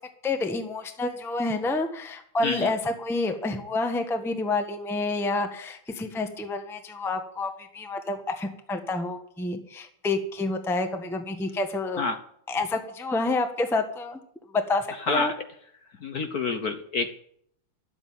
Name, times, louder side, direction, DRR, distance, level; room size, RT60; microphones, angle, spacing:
voice 1, 0.2-12.0 12.5-14.2 14.5-15.3, left 2 dB, ahead, 6 dB, 0.9 m, -28 dB
voice 2, 16.0-17.1, left 4 dB, 55° left, 6 dB, 1.3 m, -28 dB
12.5 x 8.2 x 9.5 m, 0.68 s
omnidirectional pair, 2.4 m